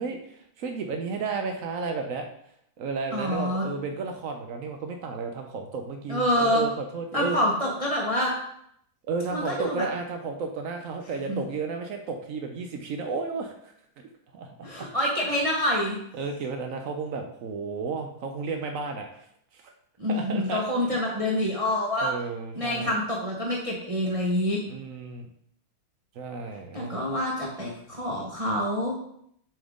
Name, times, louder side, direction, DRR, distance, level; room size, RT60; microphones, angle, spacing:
voice 1, 0.0-2.3 2.8-7.4 9.1-13.7 14.3-14.9 16.1-19.1 19.5-19.7 20.1-20.6 22.0-22.9 24.7-25.3 26.2-27.1, right 4 dB, 85° right, 4 dB, 0.7 m, -33 dB
voice 2, 3.1-3.6 6.1-6.6 7.1-8.3 9.3-9.9 11.3-11.4 14.6-15.9 20.0-22.1 22.5-24.6 26.7-28.9, left 1 dB, 30° right, -3 dB, 0.6 m, -26 dB
7.7 x 3.6 x 3.6 m, 0.70 s
omnidirectional pair, 2.1 m